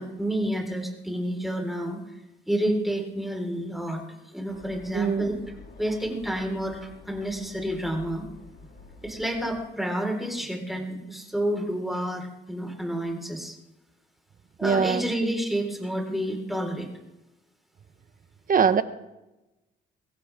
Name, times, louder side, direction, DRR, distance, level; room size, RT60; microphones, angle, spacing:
voice 1, 0.0-2.0 2.5-4.0 4.3-5.4 5.8-8.2 9.0-13.6 14.6-16.9, right 1 dB, ahead, 1 dB, 4.7 m, -29 dB
sound 1, 4.5-9.6, left 4 dB, 60° left, 5.4 m, -48 dB
voice 2, 4.9-5.3 14.6-15.1 18.5-18.8, right 6 dB, 45° right, 12 dB, 1.1 m, -22 dB
23.0 x 16.5 x 3.7 m, 0.99 s
cardioid pair, 90°, 20 cm